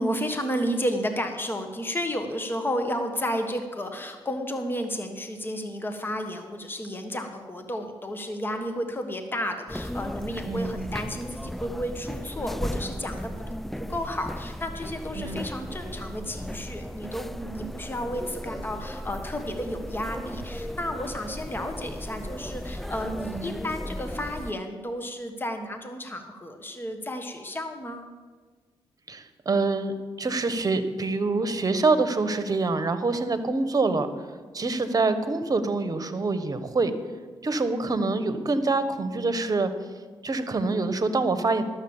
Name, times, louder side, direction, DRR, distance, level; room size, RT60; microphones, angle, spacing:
voice 1, 0.0-13.3 13.8-28.1, equal, 20° left, 6 dB, 1.4 m, -32 dB
sound 1, 9.7-24.5, equal, ahead, 0.3 m, -36 dB
voice 2, 10.5-10.8 15.1-15.5 23.3-23.6 29.1-34.1 34.5-36.9 37.4-39.7 40.2-41.6, right 3 dB, 35° right, 10 dB, 1.2 m, -25 dB
12.0 x 7.3 x 7.2 m, 1.4 s
supercardioid pair, 60°, 10 cm